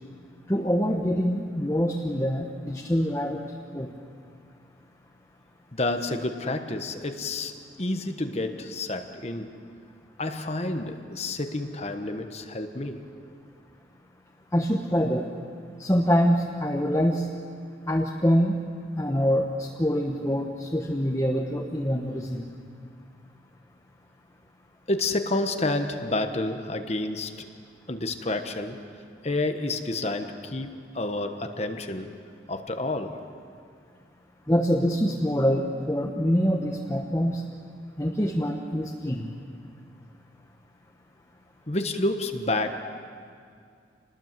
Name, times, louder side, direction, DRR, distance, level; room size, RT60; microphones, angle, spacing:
voice 1, 0.5-3.4 3.7-3.9 14.5-15.3 15.8-17.3 17.9-18.5 19.0-22.5 34.5-37.4 38.0-39.3, equal, 15° left, 0 dB, 1.2 m, -25 dB
voice 2, 5.7-9.5 10.2-13.0 24.9-27.5 27.9-28.8 29.2-32.1 32.5-33.2 41.7-42.8, left 2 dB, 35° left, 6 dB, 1.2 m, -29 dB
27.5 x 20.5 x 7.5 m, 2.3 s
head